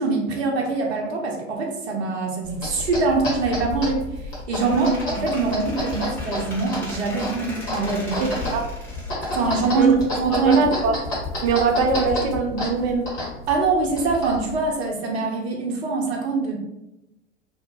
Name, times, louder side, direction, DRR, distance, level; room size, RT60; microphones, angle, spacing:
voice 1, 0.0-4.0 4.5-8.2 9.3-10.7 13.5-16.6, right 4 dB, 55° right, 0 dB, 0.7 m, -23 dB
sound 1, 2.4-14.6, left 2 dB, 30° left, 1.4 m, -31 dB
Squeak, 4.6-10.4, equal, 5° left, 1.1 m, -39 dB
voice 2, 8.2-8.6 9.7-9.9 10.3-11.0 11.4-13.1, right 4 dB, 30° right, 3 dB, 0.4 m, -22 dB
2.8 x 2.4 x 2.9 m, 0.90 s
figure-of-eight pair, 95°, 38 cm